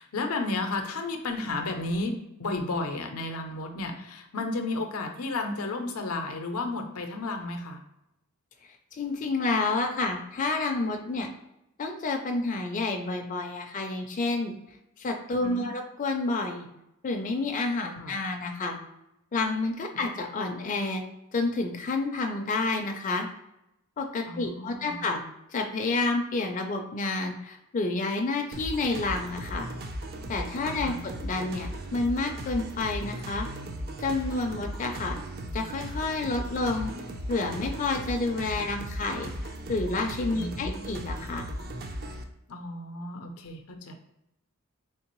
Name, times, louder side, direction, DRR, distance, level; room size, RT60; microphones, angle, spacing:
voice 1, 0.0-2.1 2.4-7.8 15.4-15.7 18.0-18.1 19.9-20.0 24.3-25.0 30.6-31.0 40.3-40.9 42.5-43.9, left 2 dB, 85° left, 5 dB, 0.5 m, -33 dB
voice 2, 8.9-11.3 11.8-14.5 15.0-16.7 17.0-18.8 19.3-21.0 21.3-23.3 24.0-25.2 25.5-29.7 30.3-33.5 34.0-35.2 35.5-36.9 37.3-41.5, left 3 dB, 35° left, 3 dB, 0.4 m, -29 dB
sound 1, 28.5-42.2, equal, 45° right, 0.4 m, -37 dB
3.5 x 3.3 x 3.0 m, 0.87 s
head